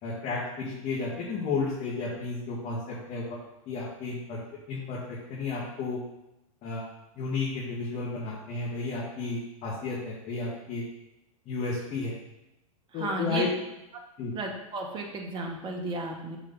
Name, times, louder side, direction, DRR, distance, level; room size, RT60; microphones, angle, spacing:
voice 1, 0.0-3.4 3.7-4.4 4.7-6.0 6.6-6.8 7.2-10.9 11.5-12.1 12.9-13.5 14.2-14.3, left 4 dB, 35° left, -7 dB, 2.1 m, -32 dB
voice 2, 13.0-13.4 14.3-16.4, right 2 dB, 25° right, 1 dB, 1.5 m, -33 dB
5.7 x 4.7 x 5.5 m, 0.89 s
hypercardioid pair, 115°, 18 cm